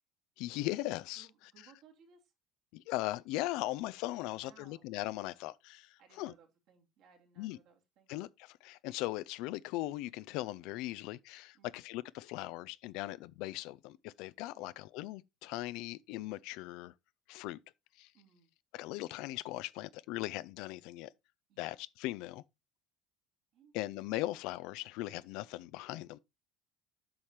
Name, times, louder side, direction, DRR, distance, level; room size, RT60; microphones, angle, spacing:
voice 1, 0.4-1.3 2.7-5.9 6.2-6.3 7.4-7.6 8.1-16.9 17.3-17.6 18.0-18.1 18.7-21.1 21.6-22.4 23.7-26.2, left 17 dB, 70° left, 0.4 m, -39 dB
voice 2, 1.1-2.3 4.2-4.9 6.0-8.1 11.5-11.8 14.5-14.9 18.1-18.5 21.5-21.7 23.5-23.7, right 6 dB, 65° right, 2.9 m, -63 dB
8.6 x 5.8 x 3.2 m
hypercardioid pair, 75°, 0 cm